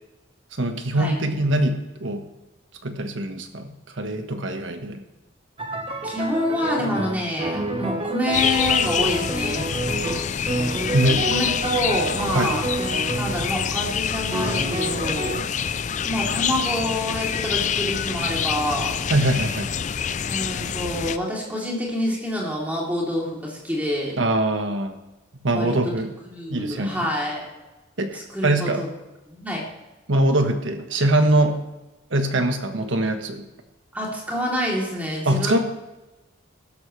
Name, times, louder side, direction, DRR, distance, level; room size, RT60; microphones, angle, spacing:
voice 1, 0.6-2.3 2.8-5.0 10.8-11.3 12.3-12.5 19.1-19.7 24.2-25.0 25.4-26.1 26.5-27.1 28.0-28.8 30.1-31.6 32.1-33.5 35.2-35.6, right 1 dB, 75° right, 6 dB, 1.4 m, -23 dB
sound 1, 5.6-13.5 14.3-15.4, right 2 dB, 25° right, 1.2 m, -29 dB
voice 2, 6.0-9.6 11.3-12.6 13.1-15.4 16.0-19.0 20.2-24.2 25.5-25.7 26.3-27.4 28.1-28.9 29.3-29.6 33.9-35.6, left 1 dB, 10° right, -3 dB, 3.1 m, -27 dB
sound 2, 8.3-21.2, left 7 dB, 40° left, 0.4 m, -26 dB
15.0 x 13.0 x 3.3 m, 1.1 s
head